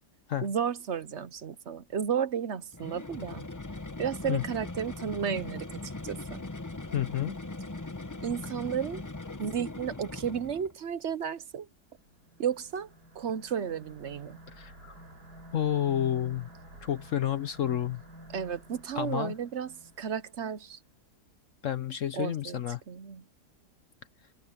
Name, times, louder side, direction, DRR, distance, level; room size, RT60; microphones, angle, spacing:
voice 1, 0.4-3.4 4.0-6.4 8.2-9.0 9.4-11.7 12.4-12.9 13.1-14.4 18.3-19.7 20.0-20.8 22.1-22.6 22.9-23.2, right 8 dB, 50° right, 1.0 m, -33 dB
sound 1, 2.7-10.8, left 2 dB, 15° left, 0.7 m, -40 dB
voice 2, 6.9-7.4 14.5-15.0 15.5-16.5 16.8-18.0 18.9-19.4 21.6-22.8, left 11 dB, 60° left, 1.0 m, -30 dB
sound 2, 12.0-20.6, right 1 dB, 70° right, 6.6 m, -51 dB
omnidirectional pair, 1.7 m